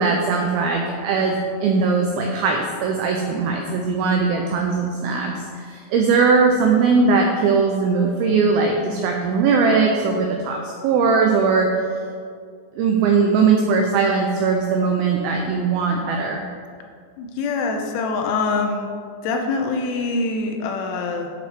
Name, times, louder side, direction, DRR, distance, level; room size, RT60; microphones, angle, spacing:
voice 1, 0.0-11.7 12.8-16.4, right 4 dB, 90° right, 2 dB, 2.1 m, -20 dB
voice 2, 17.2-18.9 19.2-21.3, left 3 dB, 80° left, 3 dB, 2.7 m, -24 dB
9.1 x 5.1 x 4.6 m, 2.1 s
omnidirectional pair, 5.0 m